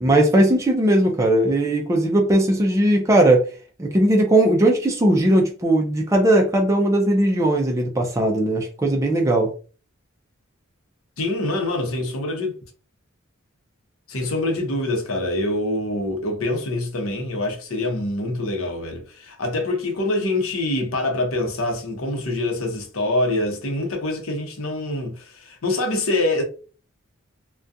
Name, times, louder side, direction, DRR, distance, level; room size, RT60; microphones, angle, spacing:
voice 1, 0.0-3.5 3.8-9.5, right 1 dB, 15° right, 0.3 m, -18 dB
voice 2, 11.2-12.5 14.1-26.4, left 2 dB, 80° left, 0.7 m, -25 dB
2.4 x 2.2 x 2.6 m
head